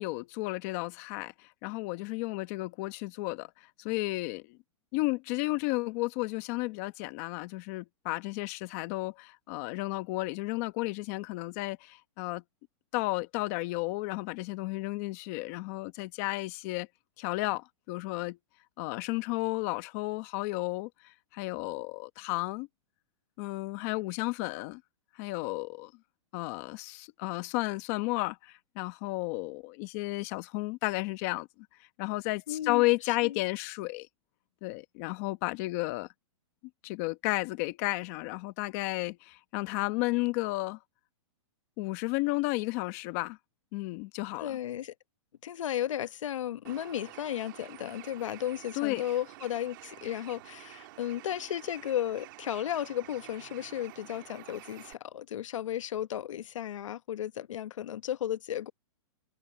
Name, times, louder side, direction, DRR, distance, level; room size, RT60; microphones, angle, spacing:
voice 1, 0.0-4.6 4.9-12.4 12.9-16.9 17.2-18.4 18.8-22.7 23.4-24.8 25.1-25.9 26.3-31.5 32.0-34.1 34.6-36.1 36.8-40.8 41.8-43.4 43.7-44.6 48.7-49.0, left 22 dB, 30° left, 1.2 m, -33 dB
voice 2, 32.5-33.4 44.4-44.9 45.4-58.7, left 11 dB, 75° left, 1.0 m, -34 dB
Bird, 46.6-54.9, right 19 dB, 40° right, 1.8 m, -50 dB
hypercardioid pair, 165°, 17 cm